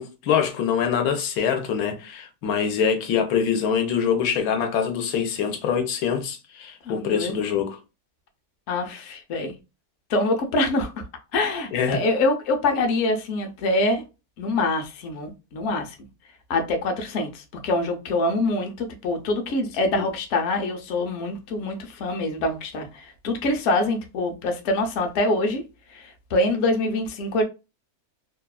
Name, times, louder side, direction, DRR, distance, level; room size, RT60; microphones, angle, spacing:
voice 1, 0.0-7.8 11.7-12.0 19.9-20.1, left 7 dB, 85° left, 1.1 m, -24 dB
voice 2, 6.8-7.3 8.7-9.6 10.1-10.9 11.3-14.0 14.4-16.1 16.5-25.6 25.9-27.4, left 2 dB, 65° left, 0.8 m, -25 dB
2.7 x 2.3 x 2.2 m
omnidirectional pair, 1.6 m